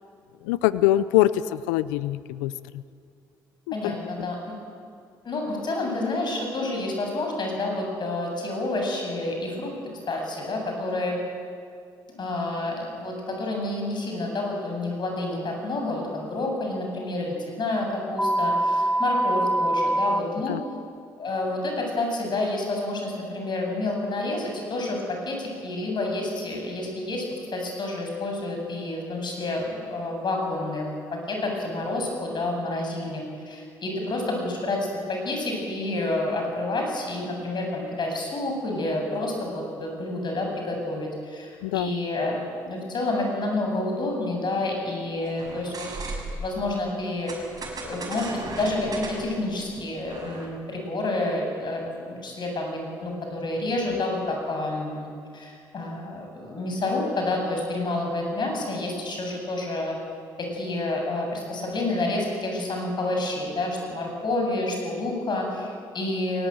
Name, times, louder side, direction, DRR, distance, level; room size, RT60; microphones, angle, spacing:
voice 1, 0.4-2.8 3.7-4.3 20.5-20.6 41.6-41.9, left 14 dB, 90° left, 16 dB, 0.6 m, -24 dB
voice 2, 3.7-4.4 5.2-9.7 10.1-11.2 12.1-20.6 21.2-27.3 27.5-34.8 35.1-42.4 42.6-45.9 46.4-47.3 47.8-55.1 55.3-60.0 60.4-66.5, left 2 dB, 50° left, 1 dB, 8.0 m, -29 dB
sound 1, 18.2-20.2, right 1 dB, 10° left, 1.9 m, -23 dB
sound 2, 45.3-46.6 47.3-50.5, right 2 dB, 40° right, 6.9 m, -36 dB
22.5 x 18.5 x 9.1 m, 2.3 s
hypercardioid pair, 55°, 10 cm